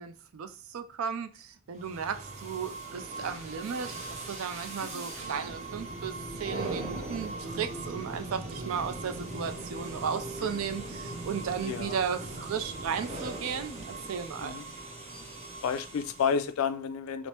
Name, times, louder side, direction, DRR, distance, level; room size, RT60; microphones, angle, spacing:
voice 1, 0.0-14.6, right 7 dB, 75° right, 0.4 m, -35 dB
sound 1, 1.8-16.5, right 2 dB, 35° right, 0.6 m, -39 dB
voice 2, 11.6-12.0 14.4-14.7 15.6-17.3, left 6 dB, 80° left, 0.3 m, -31 dB
3.1 x 2.0 x 2.9 m
head